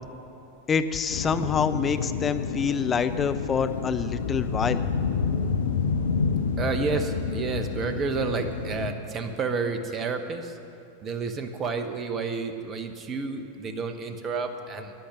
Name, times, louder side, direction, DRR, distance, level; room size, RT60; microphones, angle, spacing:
voice 1, 0.7-4.8, left 6 dB, 20° left, 10 dB, 0.6 m, -26 dB
sound 1, 1.1-8.9, left 5 dB, 65° left, 0.7 m, -29 dB
voice 2, 6.6-10.6 11.0-14.9, right 4 dB, 25° right, 7 dB, 1.1 m, -30 dB
13.5 x 10.5 x 6.4 m, 2.8 s
figure-of-eight pair, 90°, 0 cm